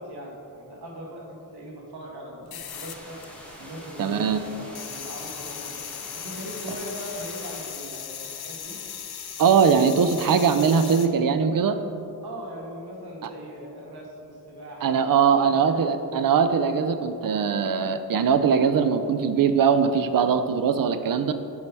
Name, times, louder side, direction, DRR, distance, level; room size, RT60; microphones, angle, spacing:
voice 1, 0.0-3.2 3.6-5.7 6.1-8.8 12.2-15.0 15.3-15.9, right 1 dB, 85° right, -2 dB, 1.7 m, -39 dB
sound 1, 2.5-11.1, left 9 dB, 80° left, 0.6 m, -38 dB
sound 2, 2.7-7.7, equal, 5° left, 1.3 m, -44 dB
voice 2, 4.0-4.4 9.4-11.8 13.2-13.3 14.8-21.3, right 6 dB, 60° right, 10 dB, 0.5 m, -21 dB
7.5 x 5.6 x 4.6 m, 2.7 s
wide cardioid pair, 125°, 38 cm